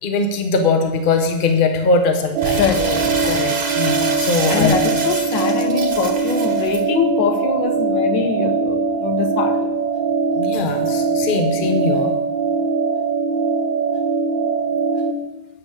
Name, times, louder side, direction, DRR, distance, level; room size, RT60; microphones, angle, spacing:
voice 1, 0.0-2.6 3.8-4.8 10.3-12.1, left 3 dB, 35° left, 5 dB, 0.9 m, -20 dB
sound 1, 2.3-15.1, right 5 dB, 80° right, 1.4 m, -21 dB
Crumpling crinkling, 2.4-6.8, right 3 dB, 40° right, 1.2 m, -27 dB
voice 2, 2.6-3.6 4.5-9.7, left 6 dB, 80° left, 8 dB, 1.5 m, -23 dB
9.1 x 6.0 x 6.5 m, 1.0 s
omnidirectional pair, 2.0 m